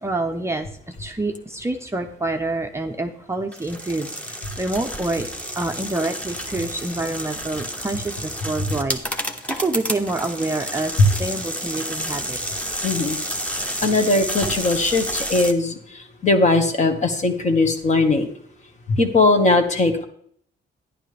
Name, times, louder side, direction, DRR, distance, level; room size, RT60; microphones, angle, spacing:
voice 1, 0.0-5.3 5.6-12.4, right 2 dB, 15° right, 3 dB, 0.7 m, -27 dB
sound 1, 3.5-15.5, equal, 5° left, 1.1 m, -30 dB
voice 2, 12.8-13.2 13.8-18.3 18.9-20.0, left 2 dB, 35° left, 5 dB, 1.6 m, -19 dB
12.0 x 11.0 x 3.4 m, 0.63 s
cardioid pair, 155°, 19 cm